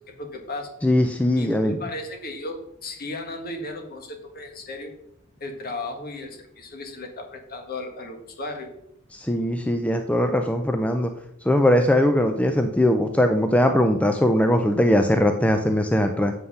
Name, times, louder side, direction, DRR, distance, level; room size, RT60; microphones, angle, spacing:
voice 1, 0.1-0.7 1.3-4.9 5.4-8.7, left 2 dB, 45° left, 3 dB, 1.6 m, -35 dB
voice 2, 0.8-1.8 9.1-11.1 11.4-16.3, left 1 dB, 5° left, 6 dB, 0.4 m, -20 dB
8.0 x 5.7 x 5.6 m, 0.78 s
head